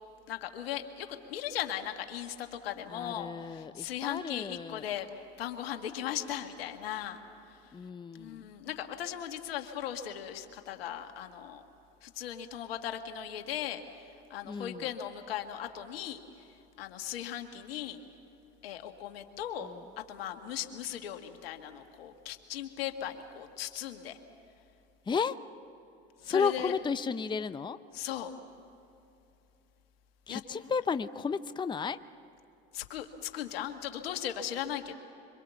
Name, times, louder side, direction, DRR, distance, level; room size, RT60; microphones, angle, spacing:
voice 1, 0.3-5.1 5.4-7.2 7.5-7.6 8.1-11.6 12.0-13.8 14.3-16.2 16.8-18.0 18.6-19.7 20.1-24.2 26.2-26.7 27.9-28.3 30.3-30.4 32.7-34.9, left 10 dB, 85° left, 6 dB, 1.8 m, -38 dB
voice 2, 2.9-4.9 7.7-8.5 14.4-14.9 19.6-19.8 25.1-25.4 26.2-27.8 30.3-32.0, left 5 dB, 15° left, 13 dB, 0.6 m, -33 dB
26.0 x 24.5 x 7.1 m, 2.8 s
hypercardioid pair, 80°, 29 cm